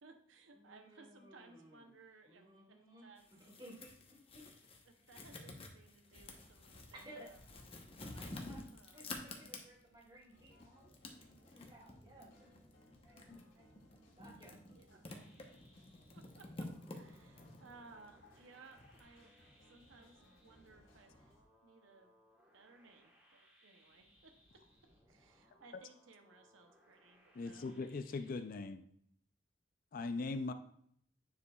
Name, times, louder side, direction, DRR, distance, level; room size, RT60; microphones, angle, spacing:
voice 1, 0.0-2.5 3.0-3.2 4.4-4.5 4.9-7.6 8.1-9.0 14.7-15.0 16.1-21.3 21.6-22.2 22.5-24.3 25.1-27.7, right 3 dB, 85° right, 6 dB, 0.8 m, -61 dB
voice 2, 0.5-1.9 2.2-3.1 3.4-4.4 6.9-7.3 8.3-10.9 11.2-12.5 13.0-13.7 14.2-15.0, right 1 dB, 25° right, -4 dB, 2.3 m, -58 dB
sound 1, 3.2-10.0 10.5-19.0, left 2 dB, 30° left, 0.9 m, -51 dB
sound 2, 10.3-21.4, equal, 90° left, 2.5 m, -66 dB
sound 3, 15.1-28.4, equal, 10° right, 1.5 m, -69 dB
voice 3, 27.3-28.9 29.9-30.5, left 3 dB, 45° left, 9 dB, 0.4 m, -40 dB
9.5 x 5.1 x 2.3 m, 0.67 s
head